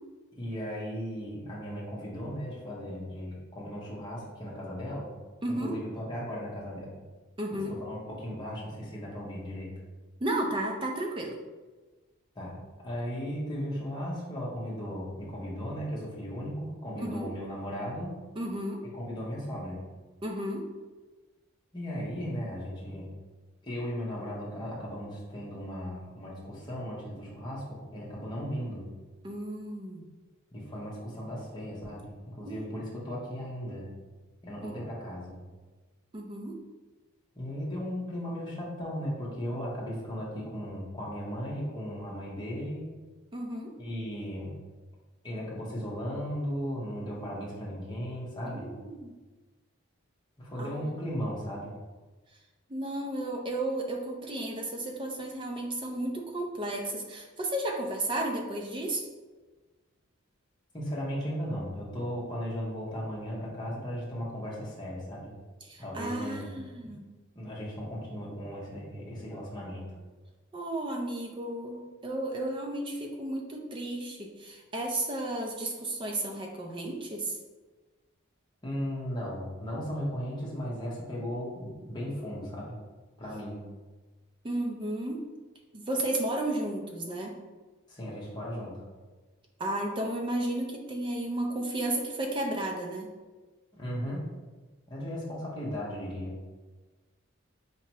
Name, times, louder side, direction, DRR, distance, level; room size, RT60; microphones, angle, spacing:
voice 1, 0.4-5.1 5.6-7.0 7.5-9.7 12.3-18.2 18.9-19.8 21.7-23.1 23.6-28.9 30.5-33.9 34.4-35.4 37.3-42.9 43.8-44.6 45.2-48.7 50.4-51.7 60.7-65.3 65.8-66.6 67.3-69.9 78.6-82.8 83.2-83.6 87.9-88.8 93.7-94.2 94.9-96.4, equal, 20° left, -6 dB, 1.0 m, -36 dB
voice 2, 5.4-5.8 7.4-7.8 10.2-11.4 17.0-17.3 18.4-18.8 20.2-20.7 29.2-30.1 32.5-32.6 34.6-34.8 36.1-36.6 43.3-43.7 48.5-49.1 50.6-50.9 52.7-59.1 65.6-67.1 70.5-77.4 84.4-85.3 85.7-87.4 89.6-93.1, right 1 dB, 25° right, 2 dB, 0.4 m, -33 dB
4.5 x 2.8 x 2.9 m, 1.3 s
head